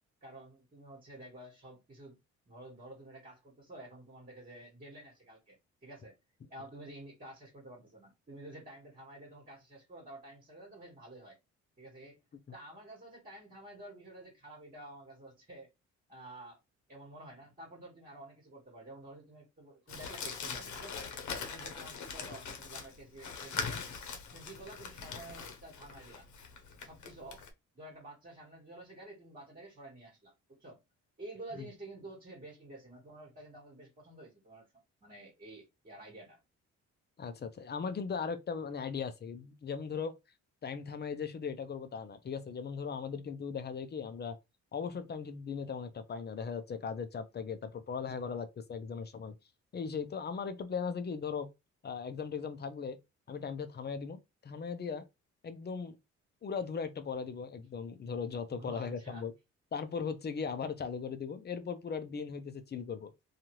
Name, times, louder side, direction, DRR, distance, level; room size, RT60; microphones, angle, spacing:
voice 1, 0.2-2.2 2.5-6.1 6.5-11.4 11.8-12.2 12.5-15.7 16.1-16.6 16.9-21.1 21.4-23.8 24.3-26.3 26.8-27.4 27.7-30.3 30.6-30.8 31.2-34.7 35.0-36.4 58.5-59.2, right 1 dB, 30° right, 1.5 m, -50 dB
Crumpling crinkling, 19.9-27.5, left 5 dB, 70° left, 0.9 m, -42 dB
voice 2, 37.2-40.1 40.6-44.4 44.7-49.4 49.7-51.5 51.8-53.0 53.3-55.0 55.4-56.0 56.4-59.3 59.7-63.1, left 6 dB, 35° left, 0.6 m, -38 dB
2.6 x 2.4 x 3.0 m
cardioid pair, 90°, 30 cm